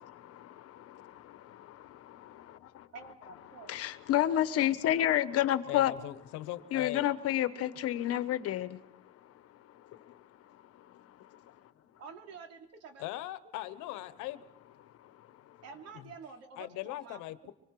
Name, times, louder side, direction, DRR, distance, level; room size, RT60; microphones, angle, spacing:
voice 1, 0.0-2.9 3.7-5.9 6.7-11.5 15.0-15.6, left 12 dB, 55° left, 1.3 m, -32 dB
voice 2, 2.9-3.7 12.0-13.0 15.6-17.5, right 5 dB, 60° right, 3.3 m, -49 dB
voice 3, 5.7-7.1 13.0-14.4 16.6-17.5, left 15 dB, 75° left, 1.3 m, -39 dB
25.5 x 24.5 x 4.8 m
cardioid pair, 160°, 30 cm